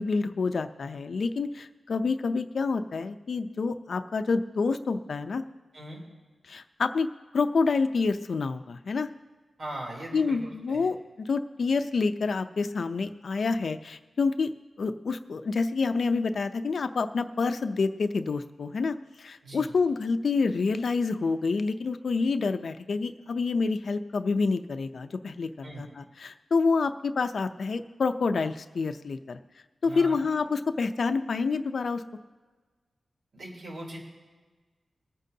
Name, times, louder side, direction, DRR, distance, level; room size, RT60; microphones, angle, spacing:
voice 1, 0.0-5.4 6.5-7.1 7.3-9.1 10.1-14.5 14.8-29.4 29.8-32.0, left 4 dB, 65° left, 9 dB, 0.6 m, -28 dB
voice 2, 9.6-10.9 19.4-19.7 25.6-25.8 29.8-30.2 33.3-34.0, right 1 dB, 70° right, -2 dB, 3.3 m, -40 dB
22.0 x 9.1 x 2.8 m, 1.4 s
wide cardioid pair, 115°, 0 cm